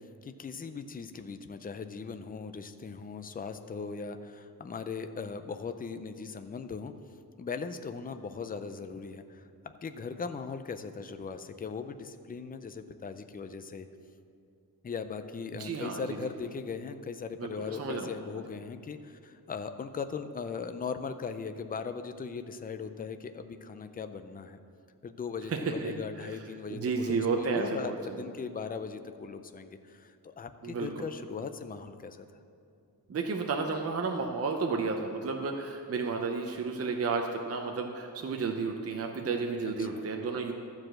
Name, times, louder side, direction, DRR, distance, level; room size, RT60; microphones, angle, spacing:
voice 1, 0.2-6.9 7.4-9.5 9.8-13.9 14.8-24.6 25.0-32.3 39.8-40.0, left 5 dB, 25° left, 9 dB, 0.4 m, -39 dB
voice 2, 15.6-16.2 17.4-18.1 25.5-25.9 26.2-26.4 26.7-28.2 30.6-31.1 33.1-40.5, right 4 dB, 40° right, 3 dB, 0.7 m, -32 dB
12.5 x 4.8 x 7.5 m, 2.5 s
wide cardioid pair, 155°, 38 cm